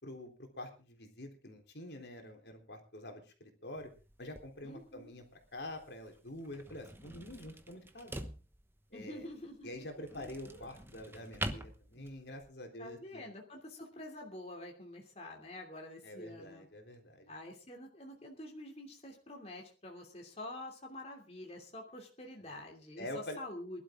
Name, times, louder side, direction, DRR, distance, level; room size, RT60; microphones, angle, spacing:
voice 1, 0.0-3.9 4.2-8.3 8.9-9.3 9.6-13.2 16.0-17.4 23.0-23.4, left 1 dB, 70° left, 4 dB, 3.7 m, -46 dB
sound 1, 3.8-12.5, right 1 dB, 15° right, 1.1 m, -46 dB
voice 2, 4.6-5.1 8.9-9.7 12.8-16.7 17.3-23.1 23.4-23.8, left 1 dB, 35° left, 1 dB, 2.9 m, -47 dB
Speech, 4.8-4.9 10.1-10.7 11.9-12.2, equal, 15° left, 5.9 m, -57 dB
21.5 x 12.0 x 3.8 m, 0.34 s
head